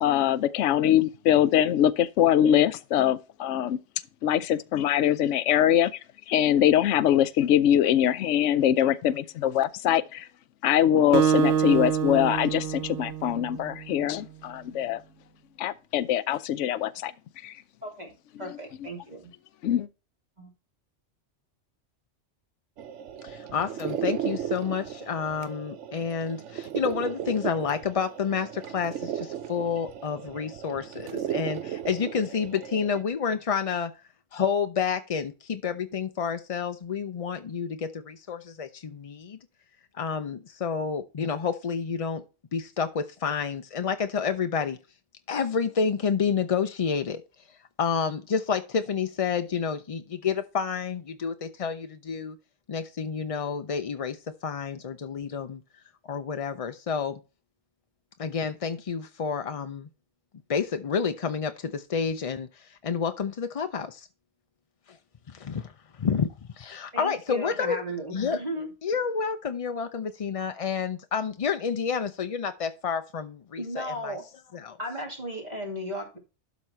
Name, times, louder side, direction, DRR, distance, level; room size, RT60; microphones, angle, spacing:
voice 1, 0.0-3.8 4.2-5.9 6.3-10.3 10.6-15.0 15.6-17.1 17.4-17.5 19.6-19.9, left 11 dB, 85° left, 0.9 m, -23 dB
Acoustic guitar, 11.1-13.9, right 8 dB, 65° right, 0.9 m, -26 dB
voice 2, 17.8-18.1 18.4-19.3 20.4-20.5 66.9-68.7 73.6-74.3 74.8-76.2, right 1 dB, 35° right, 2.8 m, -35 dB
sound 1, 22.8-33.0, right 10 dB, 90° right, 1.0 m, -35 dB
voice 3, 23.2-33.9 34.3-39.4 39.9-42.2 42.5-44.8 45.3-47.2 47.8-52.4 52.7-55.6 56.1-57.2 58.2-59.9 60.5-64.1 64.9-65.0 65.3-66.3 66.5-67.8 68.1-68.4 68.8-74.2 74.5-74.8, left 6 dB, 45° left, 0.4 m, -29 dB
12.0 x 4.1 x 4.4 m
omnidirectional pair, 1.2 m